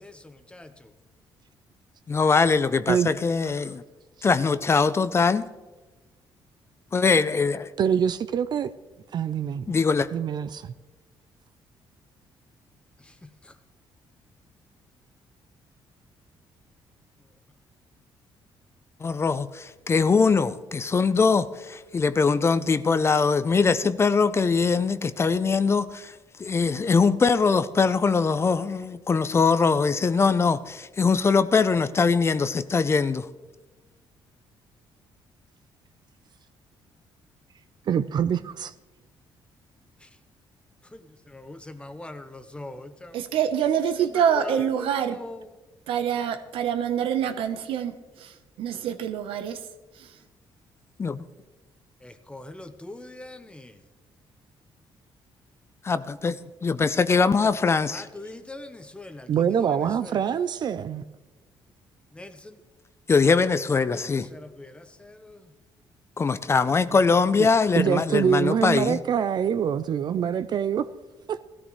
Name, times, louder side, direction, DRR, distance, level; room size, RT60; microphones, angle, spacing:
voice 1, 0.0-0.9 13.2-13.5 40.0-40.1 40.9-43.2 44.1-45.5 52.0-53.8 57.9-59.7 60.0-60.2 62.1-62.6 63.2-63.4 63.9-65.4, left 2 dB, 10° left, 0.9 m, -42 dB
voice 2, 2.1-3.8 4.2-5.5 6.9-7.7 9.7-10.1 19.0-26.1 26.4-33.3 51.0-51.2 55.8-56.4 56.6-58.1 63.1-64.3 66.2-69.0, left 4 dB, 30° left, 0.5 m, -22 dB
voice 3, 7.8-8.7 9.1-9.7 10.1-10.7 37.9-38.7 59.3-61.0 67.4-67.5 67.8-70.9 71.3-71.4, right 8 dB, 50° right, 0.5 m, -25 dB
voice 4, 43.1-45.1 45.9-49.6 50.0-50.1, right 8 dB, 80° right, 1.0 m, -26 dB
17.5 x 13.5 x 3.2 m
cardioid pair, 110°, 9 cm